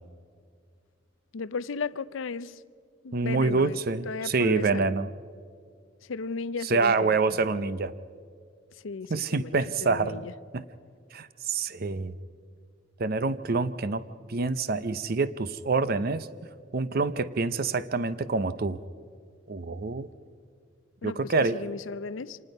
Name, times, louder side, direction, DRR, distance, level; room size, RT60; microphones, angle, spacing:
voice 1, 1.3-2.6 3.0-3.8 4.1-4.9 6.0-7.4 8.8-9.5 9.8-10.3 21.0-22.4, left 4 dB, 85° left, 0.6 m, -35 dB
voice 2, 3.1-5.1 6.6-7.9 9.1-10.2 10.5-10.6 11.1-12.1 13.0-14.0 14.3-16.3 16.7-18.8 19.5-20.1 21.0-21.6, right 4 dB, 50° right, 0.6 m, -26 dB
26.0 x 19.5 x 5.4 m
head